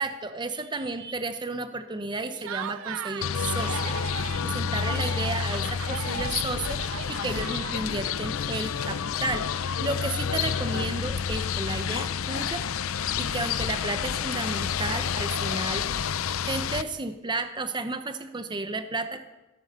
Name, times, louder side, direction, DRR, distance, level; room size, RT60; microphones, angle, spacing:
voice 1, 0.0-9.5 9.8-12.6 12.9-15.9 16.4-19.2, right 3 dB, 20° right, 9 dB, 0.8 m, -33 dB
Laughter, 2.3-3.3 3.6-4.4 4.7-8.1, right 9 dB, 75° right, 0.4 m, -37 dB
sound 1, 3.2-16.8, left 7 dB, 85° left, 0.6 m, -29 dB
16.5 x 9.7 x 6.7 m, 1.1 s
head